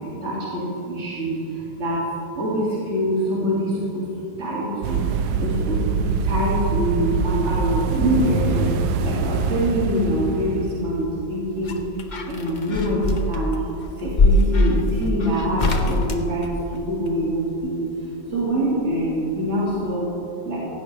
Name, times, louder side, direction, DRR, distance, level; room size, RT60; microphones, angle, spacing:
voice 1, 0.2-1.3 1.8-2.0 2.4-4.0 4.4-5.0 5.4-5.8 6.3-8.7 9.0-11.8 12.3-13.6 14.0-16.5 16.9-17.9 18.3-20.1 20.5-20.6, equal, 45° right, -6 dB, 2.6 m, -24 dB
sound 1, 4.8-11.0, right 4 dB, 80° right, 1.3 m, -24 dB
sound 2, 11.1-17.1 18.6-19.4 19.7-19.8, left 2 dB, 40° left, 0.7 m, -23 dB
16.5 x 15.5 x 3.3 m, 3.0 s
omnidirectional pair, 1.7 m